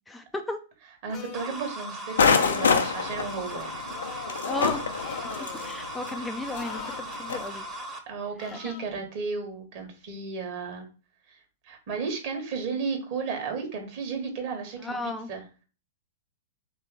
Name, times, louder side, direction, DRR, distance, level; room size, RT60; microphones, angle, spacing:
voice 1, 0.1-0.6 4.4-4.8 5.5-7.6 8.5-8.8 14.8-15.3, left 2 dB, 10° left, 6 dB, 0.4 m, -34 dB
voice 2, 1.0-4.0 8.1-10.8 11.3-11.4 11.6-15.4, right 5 dB, 45° right, 3 dB, 1.5 m, -34 dB
sound 1, 1.1-1.6 2.1-2.7 3.9-4.4 4.9-5.8 6.5-7.0 8.4-8.9, left 6 dB, 30° left, 0.8 m, -42 dB
sound 2, 1.3-8.0, right 1 dB, 15° right, 0.9 m, -38 dB
sound 3, 2.2-7.5, left 5 dB, 70° left, 0.6 m, -27 dB
3.2 x 3.1 x 4.7 m, 0.35 s
figure-of-eight pair, 105°, 0 cm